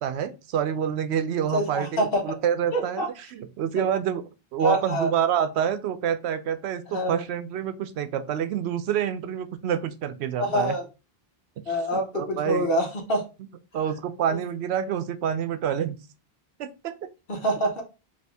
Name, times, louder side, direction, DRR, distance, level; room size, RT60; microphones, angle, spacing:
voice 1, 0.0-3.0 3.4-4.2 4.5-10.7 11.9-12.7 13.7-16.0 16.6-17.0, right 9 dB, 90° right, 0.8 m, -27 dB
voice 2, 1.5-2.2 2.7-3.1 3.8-3.9 4.6-5.1 6.9-7.2 10.4-10.8 11.7-13.2 14.3-14.4 17.3-17.8, equal, 65° left, 1.3 m, -26 dB
4.1 x 2.8 x 3.4 m
omnidirectional pair, 1.1 m